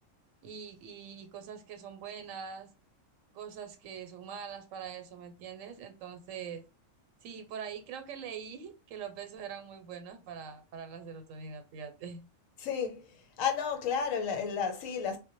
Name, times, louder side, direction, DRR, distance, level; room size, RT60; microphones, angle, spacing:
voice 1, 0.4-2.7 3.3-6.6 7.2-12.3, right 7 dB, 85° right, 1.0 m, -43 dB
voice 2, 12.6-15.2, left 7 dB, 90° left, 1.0 m, -32 dB
2.1 x 2.0 x 2.9 m
omnidirectional pair, 1.3 m